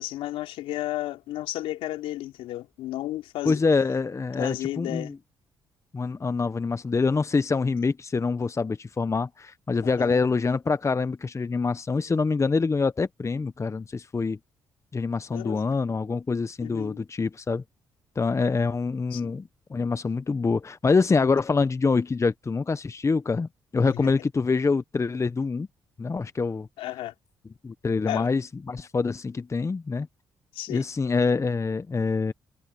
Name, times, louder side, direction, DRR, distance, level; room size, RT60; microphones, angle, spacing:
voice 1, 0.0-3.6 4.4-5.1 9.8-10.2 15.3-15.6 16.6-17.0 19.1-19.3 23.8-24.1 26.8-27.1 28.1-28.3 30.5-30.8, left 15 dB, 85° left, 4.2 m, -33 dB
voice 2, 3.4-5.1 5.9-14.4 14.9-17.6 18.2-25.7 26.0-26.7 27.6-30.1 30.7-32.3, left 4 dB, 30° left, 0.9 m, -25 dB
supercardioid pair, 55°, 9 cm